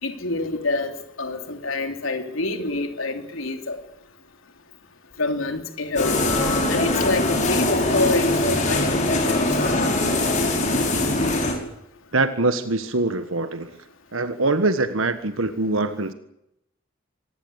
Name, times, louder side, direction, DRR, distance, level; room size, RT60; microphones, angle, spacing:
voice 1, 0.0-0.9 1.2-3.8 5.2-6.2 6.7-9.5, left 2 dB, 80° left, 5 dB, 3.3 m, -26 dB
sound 1, 6.0-11.5, left 2 dB, 40° left, 6.3 m, -22 dB
voice 2, 12.1-13.7 14.1-16.1, right 2 dB, 80° right, 9 dB, 1.5 m, -23 dB
26.0 x 20.0 x 8.2 m, 0.81 s
head